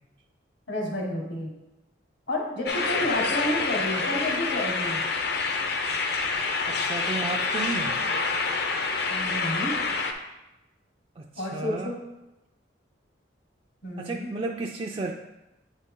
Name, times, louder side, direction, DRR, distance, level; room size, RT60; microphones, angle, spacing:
voice 1, 0.7-1.5 2.3-5.0 9.1-9.7 11.4-12.0 13.8-14.3, left 1 dB, 75° left, -1 dB, 1.6 m, -30 dB
sound 1, 2.7-10.1, left 4 dB, 55° left, 0.6 m, -27 dB
voice 2, 6.7-8.1 11.2-11.9 14.0-15.1, right 3 dB, 30° right, 0 dB, 0.3 m, -33 dB
8.5 x 4.2 x 3.7 m, 0.97 s
head